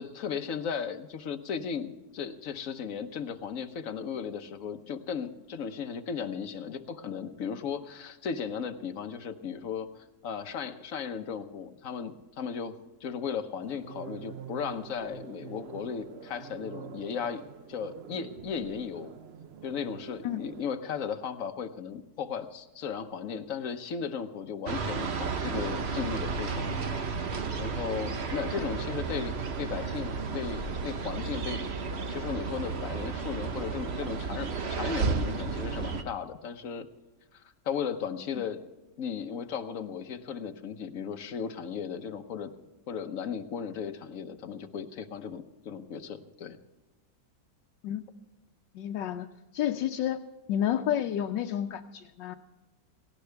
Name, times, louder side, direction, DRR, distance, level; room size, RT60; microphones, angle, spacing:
voice 1, 0.0-9.9 10.2-12.7 13.0-17.4 17.7-19.1 19.6-26.8 27.6-31.6 32.1-36.9 37.3-38.6 39.0-42.5 42.9-46.6, left 7 dB, 55° left, 8 dB, 1.2 m, -36 dB
sound 1, 13.6-20.6, right 8 dB, 70° right, 0.6 m, -46 dB
sound 2, 24.7-36.0, right 5 dB, 45° right, 1.1 m, -33 dB
voice 2, 48.7-49.3 49.5-50.2 50.5-52.4, left 10 dB, 85° left, 4 dB, 1.3 m, -30 dB
18.0 x 16.5 x 3.4 m, 1.1 s
omnidirectional pair, 1.9 m